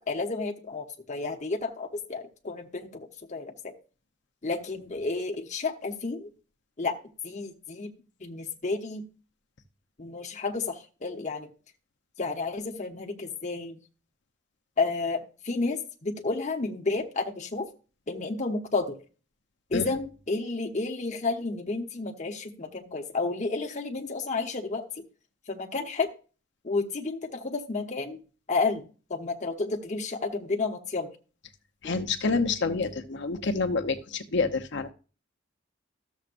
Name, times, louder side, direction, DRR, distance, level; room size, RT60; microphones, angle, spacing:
voice 1, 0.1-3.7 4.4-6.3 6.8-6.9 7.2-7.9 8.2-9.0 10.0-11.5 12.2-13.8 14.8-17.7 18.1-18.9 19.7-24.8 25.5-26.1 26.6-28.2 28.5-31.1 31.8-32.0 32.2-32.3, left 3 dB, 40° left, 2 dB, 1.0 m, -31 dB
voice 2, 31.8-34.9, left 4 dB, 65° left, 7 dB, 0.8 m, -28 dB
13.0 x 7.2 x 2.6 m, 0.36 s
head